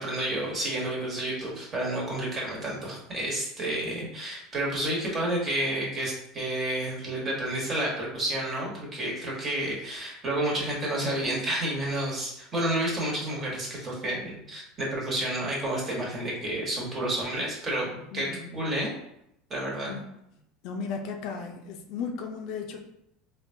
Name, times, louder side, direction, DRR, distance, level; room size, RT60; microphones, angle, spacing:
voice 1, 0.0-17.9 18.1-18.9 19.5-19.9, right 1 dB, 30° right, -4 dB, 1.3 m, -30 dB
voice 2, 18.1-18.5 19.9-20.1 20.6-22.8, left 5 dB, 65° left, 3 dB, 0.4 m, -35 dB
3.6 x 2.3 x 2.6 m, 0.78 s
supercardioid pair, 115°, 0 cm